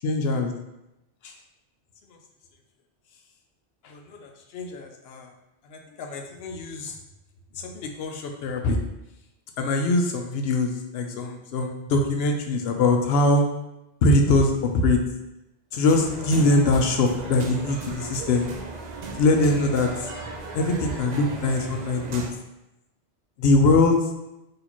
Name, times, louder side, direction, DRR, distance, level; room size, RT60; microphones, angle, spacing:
voice 1, 0.0-0.5 1.2-1.3 2.1-2.2 3.8-5.3 5.7-6.9 7.5-8.8 9.6-13.4 14.0-15.0 15.7-18.5 19.2-20.1 20.5-22.2 23.4-24.0, left 2 dB, 65° left, 4 dB, 0.8 m, -22 dB
sound 1, 15.9-22.3, right 3 dB, 60° right, 0.4 m, -37 dB
4.1 x 2.9 x 2.9 m, 0.92 s
omnidirectional pair, 1.2 m